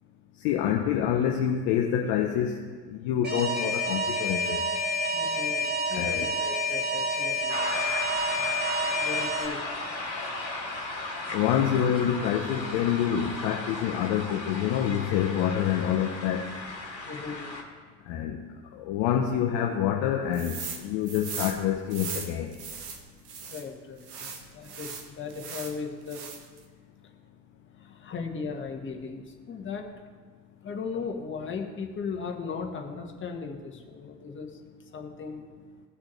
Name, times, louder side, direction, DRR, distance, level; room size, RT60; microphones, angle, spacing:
voice 1, 0.4-2.6 2.9-4.6 5.9-6.2 11.3-16.5 18.1-18.4 18.7-22.5, left 9 dB, 45° left, 1 dB, 0.9 m, -27 dB
Alarm, 3.2-9.5, equal, 20° right, 2.1 m, -28 dB
voice 2, 5.1-7.9 8.3-8.5 8.9-9.6 17.0-17.5 23.5-26.3 27.0-27.3 27.7-29.9 30.6-35.5, left 5 dB, 25° left, 2 dB, 1.5 m, -37 dB
sound 1, 7.5-17.6, left 2 dB, 90° left, 1.4 m, -36 dB
sound 2, 20.3-20.8 21.1-23.6 24.0-25.8 26.1-26.6, right 6 dB, 65° right, 1.5 m, -38 dB
16.5 x 6.1 x 3.3 m, 1.5 s
figure-of-eight pair, 75°, 50 cm